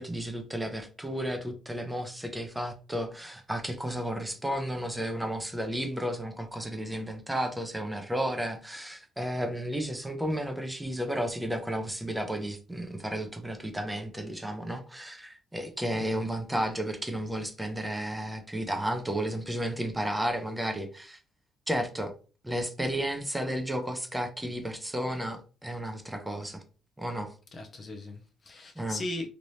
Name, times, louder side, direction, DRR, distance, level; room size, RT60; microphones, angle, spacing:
voice 1, 0.0-21.2 21.7-22.1 22.4-26.6 27.0-27.3 28.8-29.0, equal, 5° right, 0.6 m, -33 dB
voice 2, 27.5-29.3, left 2 dB, 35° left, 0.6 m, -38 dB
3.2 x 2.9 x 2.7 m
cardioid pair, 120°, 0 cm